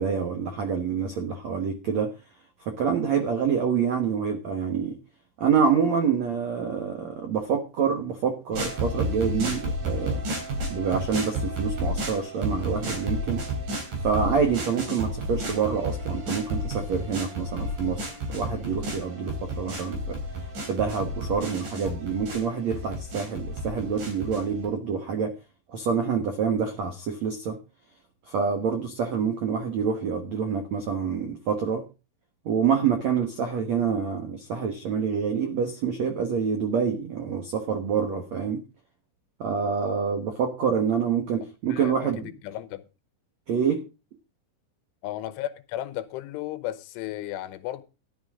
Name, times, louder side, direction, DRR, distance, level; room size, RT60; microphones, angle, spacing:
voice 1, 0.0-2.1 2.6-5.0 5.4-10.2 10.7-13.4 14.0-20.2 20.6-25.3 25.7-27.6 28.3-31.8 32.4-38.6 39.4-42.3 43.5-43.8, right 6 dB, 85° right, 1.5 m, -27 dB
sound 1, 8.5-24.7, right 1 dB, 45° right, 4.9 m, -32 dB
voice 2, 41.7-42.9 45.0-47.8, left 13 dB, 85° left, 3.4 m, -34 dB
14.0 x 11.5 x 3.7 m
omnidirectional pair, 5.4 m